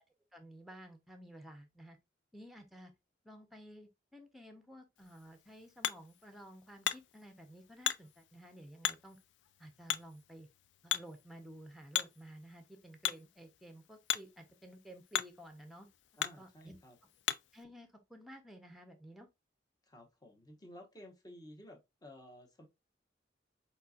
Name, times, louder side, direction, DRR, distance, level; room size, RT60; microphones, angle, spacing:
voice 1, 0.3-2.0 2.3-2.9 3.2-9.2 9.6-10.5 10.8-15.9 16.4-16.8 17.5-19.3, equal, ahead, 0.7 m, -53 dB
Hammer, 5.0-17.6, left 11 dB, 75° left, 0.3 m, -41 dB
voice 2, 16.1-17.0 19.8-22.7, left 1 dB, 20° left, 1.0 m, -54 dB
4.2 x 4.1 x 2.4 m
head